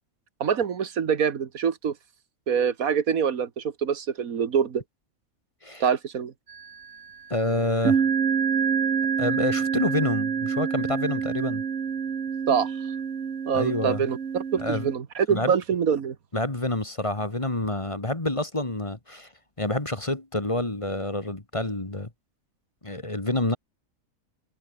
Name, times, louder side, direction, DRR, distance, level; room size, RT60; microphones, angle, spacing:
voice 1, 0.4-2.0 2.5-4.8 5.8-6.3 12.5-12.7 13.5-16.2, right 7 dB, 75° right, 1.8 m, -25 dB
sound 1, 6.5-7.0 7.8-15.0, right 6 dB, 55° right, 1.6 m, -27 dB
voice 2, 7.3-8.0 9.2-11.6 13.5-14.0 14.6-14.9 15.3-15.5 16.3-19.3 19.6-22.1 22.8-23.6, left 1 dB, 20° left, 2.0 m, -28 dB
omnidirectional pair, 1.5 m